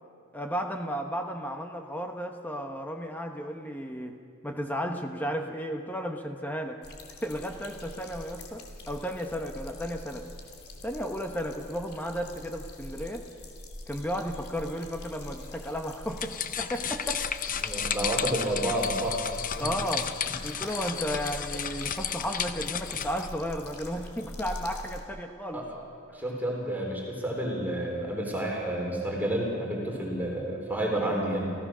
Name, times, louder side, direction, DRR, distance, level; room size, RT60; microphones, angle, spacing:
voice 1, 0.3-4.2 4.4-6.8 7.2-10.3 10.8-13.2 13.9-17.3 19.6-20.1 20.4-25.7, equal, 10° left, 4 dB, 1.1 m, -34 dB
sound 1, 6.8-25.0, left 1 dB, 75° left, 2.9 m, -43 dB
sound 2, 16.1-23.3, left 8 dB, 40° left, 0.7 m, -33 dB
voice 2, 17.6-19.7 20.3-20.4 25.5-25.6 26.1-31.5, right 1 dB, 10° right, -2 dB, 3.8 m, -30 dB
29.0 x 15.5 x 6.3 m, 2.3 s
head